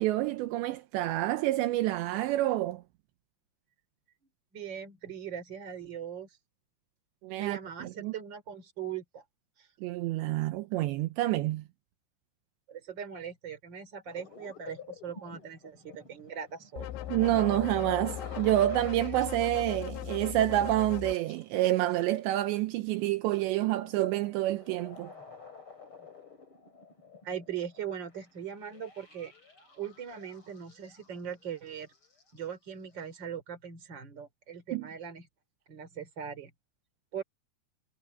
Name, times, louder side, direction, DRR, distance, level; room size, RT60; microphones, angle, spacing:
voice 1, 0.0-2.8 7.2-8.1 9.8-11.6 17.1-25.1 34.7-34.9, right 15 dB, 80° right, 2.9 m, -28 dB
voice 2, 4.5-6.3 7.4-9.2 9.6-9.7 12.7-16.9 27.2-29.3 29.7-31.9 32.3-35.3 35.7-36.5 37.1-37.2, right 8 dB, 25° right, 3.3 m, -40 dB
sound 1, 14.1-22.5 23.0-31.7 31.9-32.4, left 4 dB, 25° left, 7.4 m, -50 dB
sound 2, 16.8-21.2, left 12 dB, 80° left, 3.3 m, -38 dB
omnidirectional pair, 5.3 m